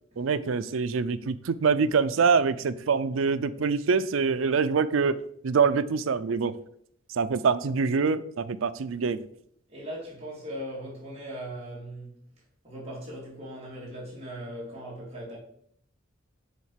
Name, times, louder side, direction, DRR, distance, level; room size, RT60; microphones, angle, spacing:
voice 1, 0.2-5.2 5.4-6.5 7.1-9.2, right 5 dB, 85° right, 0.5 m, -25 dB
voice 2, 9.7-12.2 12.6-15.4, equal, 30° right, 3.1 m, -39 dB
7.6 x 3.6 x 5.7 m
head